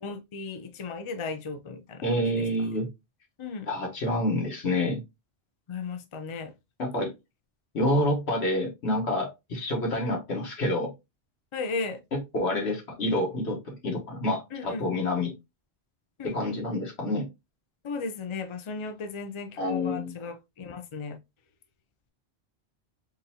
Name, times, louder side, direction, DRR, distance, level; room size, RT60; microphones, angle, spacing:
voice 1, 0.0-2.7 3.4-3.7 5.7-6.5 11.5-12.0 14.5-14.9 16.2-16.4 17.8-21.2, left 4 dB, 45° left, 0.4 m, -36 dB
voice 2, 2.0-2.9 3.7-5.0 6.8-7.1 7.7-10.9 12.1-15.3 16.2-17.3 19.6-20.2, left 1 dB, 70° left, 1.6 m, -28 dB
3.9 x 2.6 x 2.7 m
omnidirectional pair, 1.2 m